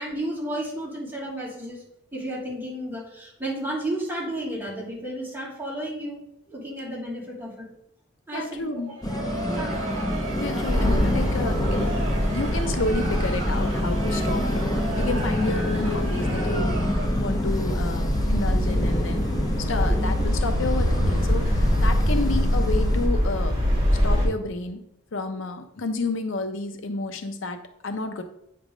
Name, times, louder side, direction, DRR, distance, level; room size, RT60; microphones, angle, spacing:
voice 1, 0.0-1.8 2.1-7.7 8.3-9.8 19.8-20.0, right 1 dB, 10° right, -6 dB, 2.5 m, -33 dB
voice 2, 8.3-9.0 10.4-11.9 12.3-19.2 19.6-23.5 24.0-24.8 25.1-28.2, left 3 dB, 65° left, 7 dB, 0.6 m, -31 dB
Crowd, 8.9-17.4, right 2 dB, 65° right, 1.4 m, -35 dB
sound 1, 9.0-23.1, left 1 dB, 20° left, 0.5 m, -28 dB
sound 2, 10.7-24.3, equal, 25° right, 2.2 m, -24 dB
8.2 x 3.3 x 5.1 m, 0.77 s
head